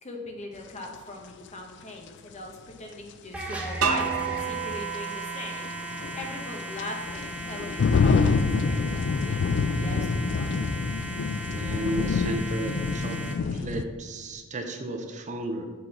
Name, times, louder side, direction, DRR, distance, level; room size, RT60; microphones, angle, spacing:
voice 1, 0.0-10.5, left 1 dB, 30° left, 2 dB, 1.1 m, -40 dB
sound 1, 0.8-0.9 3.4-3.5 4.0-4.1 5.6-13.8, left 4 dB, 55° left, 0.4 m, -26 dB
sound 2, 3.3-13.3, right 1 dB, 5° right, 0.9 m, -37 dB
sound 3, 3.8-6.7, right 7 dB, 85° right, 0.7 m, -31 dB
voice 2, 11.5-13.2 13.5-15.7, right 1 dB, 35° right, 5 dB, 0.6 m, -33 dB
7.8 x 4.0 x 5.8 m, 1.4 s
head